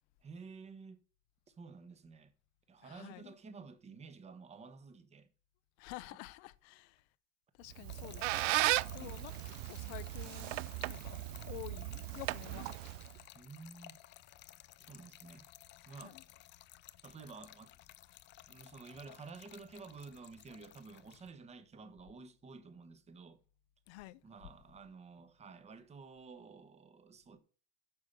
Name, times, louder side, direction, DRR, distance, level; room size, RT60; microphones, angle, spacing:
voice 1, 0.2-1.0 1.5-2.3 2.7-5.3 9.0-9.3 13.3-14.0 14.8-15.5 15.9-16.2 17.0-17.8 18.5-23.4 24.2-27.4, right 4 dB, 20° right, 1.3 m, -52 dB
voice 2, 2.8-3.3 5.8-7.1 7.5-12.9 15.9-16.2 23.9-24.2, left 19 dB, 65° left, 0.8 m, -50 dB
Squeak, 7.7-13.2, right 19 dB, 90° right, 0.6 m, -36 dB
Trickle dribble / Fill (with liquid), 7.9-21.3, left 14 dB, 30° left, 0.5 m, -56 dB
9.5 x 6.6 x 6.7 m
supercardioid pair, 150°, 36 cm